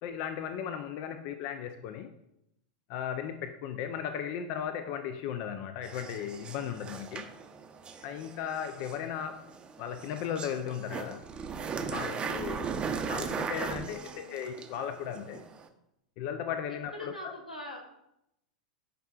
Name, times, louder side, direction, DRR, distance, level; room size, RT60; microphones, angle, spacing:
voice 1, 0.0-2.1 2.9-7.3 8.0-9.5 9.8-11.3 11.9-12.8 13.1-15.4 16.2-17.3, left 8 dB, 45° left, 8 dB, 0.5 m, -36 dB
sound 1, 5.8-15.7, right 6 dB, 20° right, 0.7 m, -38 dB
voice 2, 13.8-14.6 16.9-18.0, left 1 dB, 90° left, 1 dB, 1.6 m, -44 dB
10.0 x 5.4 x 2.4 m, 0.81 s
figure-of-eight pair, 95°, 4 cm